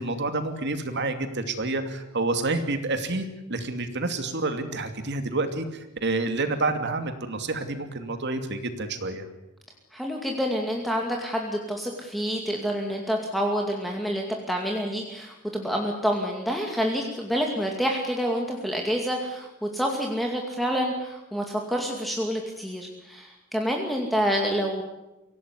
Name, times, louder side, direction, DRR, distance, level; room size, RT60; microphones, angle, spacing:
voice 1, 0.0-9.2, right 2 dB, 55° right, 8 dB, 2.6 m, -29 dB
voice 2, 9.9-24.8, equal, ahead, 0 dB, 2.3 m, -28 dB
24.5 x 17.5 x 9.8 m, 0.98 s
head